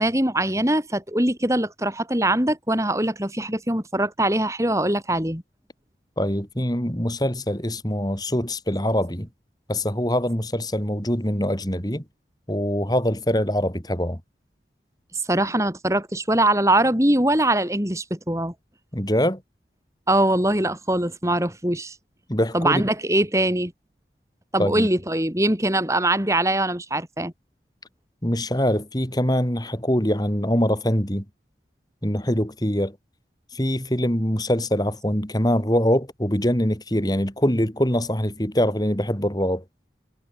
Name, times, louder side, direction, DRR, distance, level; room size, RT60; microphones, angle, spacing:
voice 1, 0.0-5.4 15.3-18.5 20.1-21.9 22.5-23.7 24.5-27.3, right 1 dB, 15° right, 6.9 m, -22 dB
voice 2, 6.2-9.3 9.7-12.0 12.5-14.2 18.9-19.4 22.3-22.9 24.6-24.9 28.2-31.2 32.0-33.0 33.5-39.6, equal, 20° left, 4.7 m, -23 dB
head